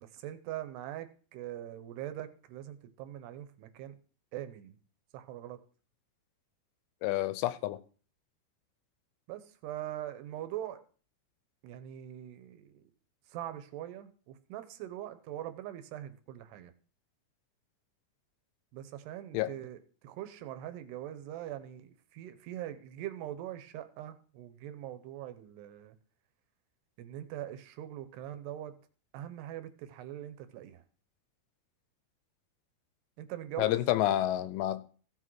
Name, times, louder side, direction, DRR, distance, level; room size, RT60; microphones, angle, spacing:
voice 1, 0.0-4.0 4.3-4.8 5.1-5.6 9.3-10.8 11.6-12.9 13.3-16.7 18.7-25.9 27.0-28.8 29.1-30.8 33.2-33.8, right 12 dB, 80° right, 2.8 m, -42 dB
voice 2, 7.0-7.8 19.3-19.5 33.6-34.9, left 14 dB, 85° left, 2.8 m, -29 dB
15.5 x 6.2 x 4.6 m
omnidirectional pair, 5.0 m